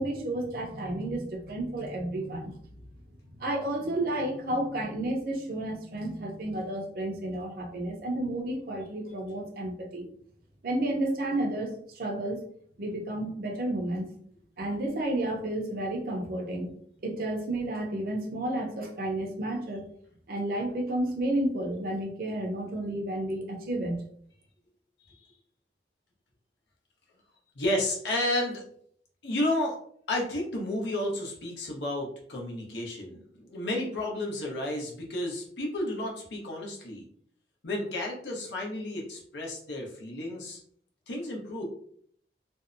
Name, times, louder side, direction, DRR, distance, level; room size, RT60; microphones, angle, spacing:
voice 1, 0.0-2.6 3.4-10.1 10.6-12.4 12.8-14.1 14.6-16.7 17.0-19.8 20.3-24.0, right 1 dB, 55° right, 2 dB, 0.5 m, -31 dB
voice 2, 27.6-28.6 29.2-29.8 30.1-37.0 37.6-40.6 41.1-41.6, left 1 dB, 90° left, -1 dB, 0.8 m, -32 dB
2.6 x 2.1 x 2.5 m, 0.63 s
head